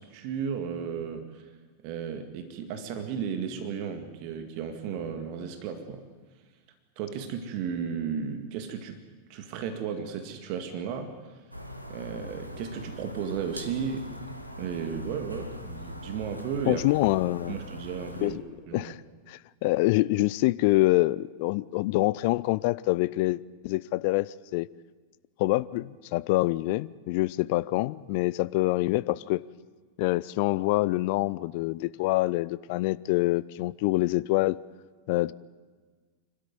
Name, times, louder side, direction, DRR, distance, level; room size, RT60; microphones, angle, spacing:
voice 1, 0.0-1.5 1.8-6.1 7.0-9.0 9.3-11.1 11.9-14.2 14.6-16.8 17.5-18.4 18.7-18.9, right 7 dB, 45° right, 6 dB, 2.1 m, -34 dB
sound 1, 11.5-18.3, equal, 90° right, 1.6 m, -41 dB
voice 2, 16.7-17.6 18.2-18.4 18.7-19.0 19.3-24.7 25.4-29.4 30.0-34.6 35.1-35.3, left 20 dB, 50° left, 19 dB, 0.5 m, -26 dB
26.0 x 13.0 x 9.4 m, 1.5 s
figure-of-eight pair, 90°, 0 cm